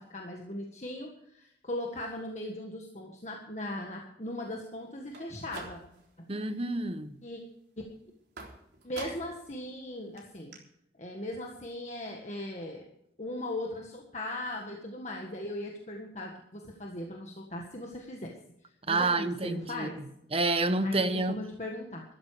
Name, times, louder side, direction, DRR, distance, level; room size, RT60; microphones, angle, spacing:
voice 1, 0.0-5.8 7.2-7.4 8.8-10.6 11.0-12.9 13.2-18.4 18.9-20.0 20.8-22.0, left 1 dB, 40° left, 1.7 m, -38 dB
sound 1, 5.0-6.2 6.6-7.1 8.4-9.5 9.8-9.9 10.2-10.3 10.5-10.6, right 3 dB, 70° right, 3.6 m, -46 dB
voice 2, 6.3-7.2 18.9-19.9 20.3-21.4, right 2 dB, 35° right, 0.9 m, -28 dB
13.5 x 13.0 x 4.9 m
head